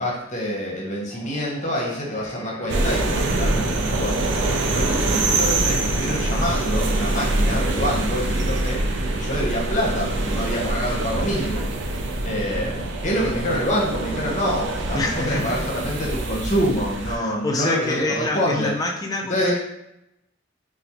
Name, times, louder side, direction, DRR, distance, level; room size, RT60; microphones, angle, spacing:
voice 1, 0.0-4.3 4.6-8.8 9.1-18.7 19.3-19.5, equal, 40° left, -3 dB, 0.8 m, -26 dB
sound 1, 1.1-7.0, equal, 25° right, 1.1 m, -40 dB
sound 2, 2.7-17.2, right 2 dB, 65° right, 0.4 m, -24 dB
voice 2, 14.9-15.7 17.1-19.5, left 2 dB, 20° left, 1 dB, 0.3 m, -26 dB
4.0 x 2.0 x 2.8 m, 0.85 s
head